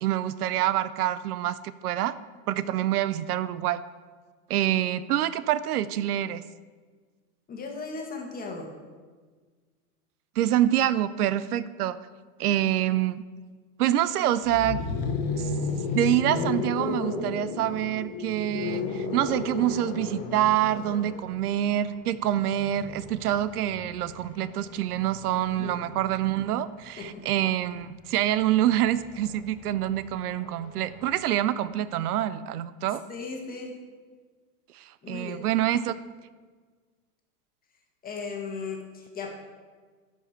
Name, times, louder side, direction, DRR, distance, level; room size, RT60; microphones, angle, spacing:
voice 1, 0.0-2.2 2.5-3.8 4.5-6.4 10.4-12.0 12.4-13.2 13.8-14.8 15.4-15.5 15.9-33.0 34.7-35.9, right 12 dB, 85° right, 15 dB, 0.6 m, -26 dB
voice 2, 7.5-8.7 25.4-25.7 27.0-27.2 33.1-33.7 35.0-35.4 38.0-39.3, left 4 dB, 20° left, 1 dB, 1.5 m, -36 dB
sound 1, 14.4-26.4 27.7-31.3, left 4 dB, 40° left, 1.3 m, -34 dB
11.5 x 5.3 x 4.3 m, 1.5 s
hypercardioid pair, 120°, 44 cm